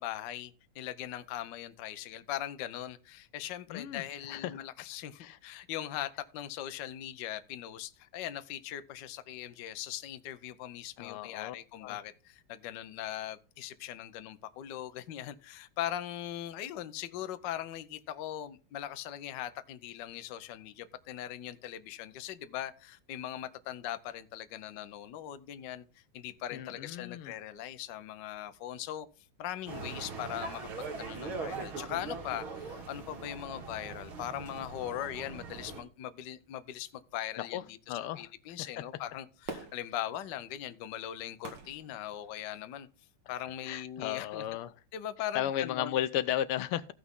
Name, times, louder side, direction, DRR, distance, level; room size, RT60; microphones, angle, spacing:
voice 1, 0.0-25.8 26.1-29.1 29.4-37.8 38.2-42.9 43.3-44.4 44.9-46.0, left 12 dB, 65° left, 1.3 m, -40 dB
voice 2, 3.7-4.6 5.2-5.4 11.0-11.5 11.8-12.0 26.5-27.3 37.4-37.6 37.9-38.3 38.6-38.8 43.6-44.7 45.3-46.9, left 12 dB, 80° left, 1.6 m, -35 dB
sound 1, 29.7-35.8, right 4 dB, 70° right, 2.7 m, -41 dB
Fireworks, 39.4-42.8 43.3-43.4, right 4 dB, 55° right, 2.1 m, -47 dB
15.5 x 6.0 x 3.6 m
omnidirectional pair, 2.4 m